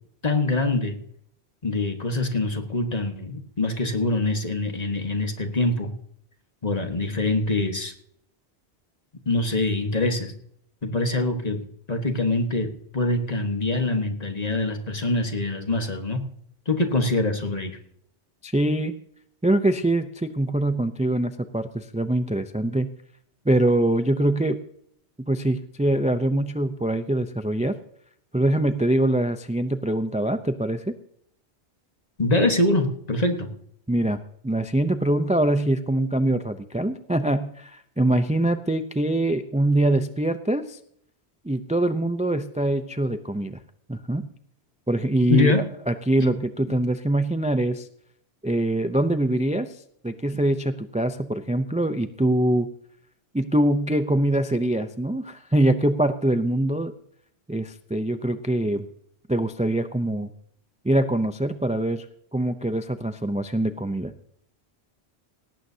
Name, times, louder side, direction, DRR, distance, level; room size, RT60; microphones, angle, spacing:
voice 1, 0.2-1.0 1.6-5.9 6.6-7.9 9.2-10.3 10.8-16.3 16.7-17.8 32.2-33.5 45.3-45.7 46.3-46.4, left 2 dB, 40° left, 5 dB, 1.6 m, -24 dB
voice 2, 18.4-18.9 19.4-22.9 23.5-24.6 25.3-27.7 28.3-30.9 33.9-34.2 34.4-40.8 41.4-43.6 43.9-44.3 44.9-45.5 45.9-47.9 48.4-49.7 50.0-52.7 53.3-56.9 57.5-58.9 59.3-60.3 60.8-62.0 62.3-64.1, right 1 dB, 10° right, 10 dB, 0.4 m, -23 dB
18.0 x 15.5 x 2.8 m, 0.68 s
omnidirectional pair, 1.1 m